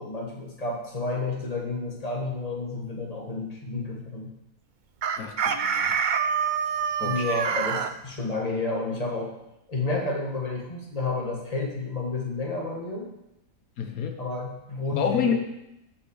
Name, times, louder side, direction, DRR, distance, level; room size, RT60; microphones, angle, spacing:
voice 1, 0.0-4.3 7.0-9.3 9.7-13.1 14.2-15.3, left 3 dB, 25° left, -1 dB, 1.9 m, -30 dB
Chicken rooster, 5.0-7.9, right 7 dB, 55° right, 0.5 m, -26 dB
voice 2, 5.2-5.9 7.0-7.4 13.8-14.2 14.9-15.3, left 7 dB, 85° left, 5 dB, 1.4 m, -29 dB
13.0 x 5.9 x 4.9 m, 0.87 s
omnidirectional pair, 1.5 m